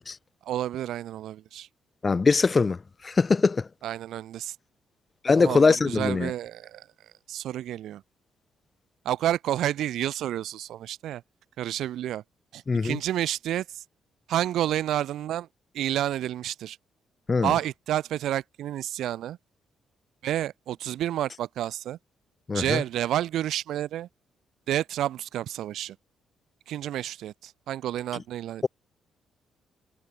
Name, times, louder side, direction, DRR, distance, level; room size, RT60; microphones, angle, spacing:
voice 1, 0.4-1.7 3.8-4.5 5.4-6.9 7.3-8.0 9.0-11.2 11.6-12.2 12.5-13.8 14.3-15.5 15.7-16.8 17.4-19.4 20.2-22.0 22.5-24.1 24.7-25.9 26.7-28.6, right 12 dB, 75° right, 4.9 m, -30 dB
voice 2, 2.0-2.8 3.0-3.7 5.2-6.3 12.7-13.0 17.3-17.5 22.5-22.8, left 4 dB, 20° left, 1.6 m, -22 dB
cardioid pair, 170°, 0 cm